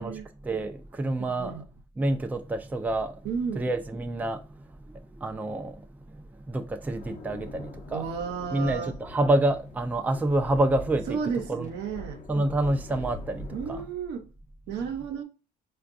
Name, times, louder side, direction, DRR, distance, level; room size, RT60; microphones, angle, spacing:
voice 1, 0.0-1.6 2.0-3.2 3.6-5.9 6.1-8.1 8.5-11.2 11.5-11.7 12.3-13.8, right 1 dB, 10° right, 0.4 m, -28 dB
voice 2, 1.2-1.6 3.2-3.7 7.9-9.0 11.1-12.2 13.5-14.3 14.7-15.2, right 6 dB, 80° right, 0.7 m, -33 dB
sound 1, 6.9-13.8, left 2 dB, 45° left, 0.8 m, -43 dB
4.4 x 2.3 x 2.5 m
cardioid pair, 110°, 17 cm